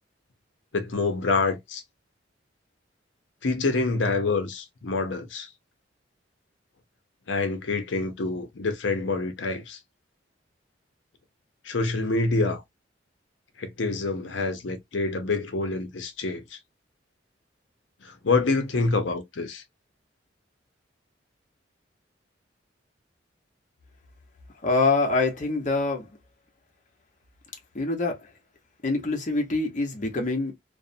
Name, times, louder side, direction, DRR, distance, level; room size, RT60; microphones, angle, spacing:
voice 1, 0.7-1.8 3.4-5.5 7.3-9.8 11.6-12.6 13.6-16.6 18.0-19.6, left 3 dB, 75° left, 0.6 m, -26 dB
voice 2, 24.6-26.1 27.7-28.2 28.8-30.5, left 3 dB, 40° left, 0.8 m, -25 dB
2.5 x 2.0 x 2.5 m
head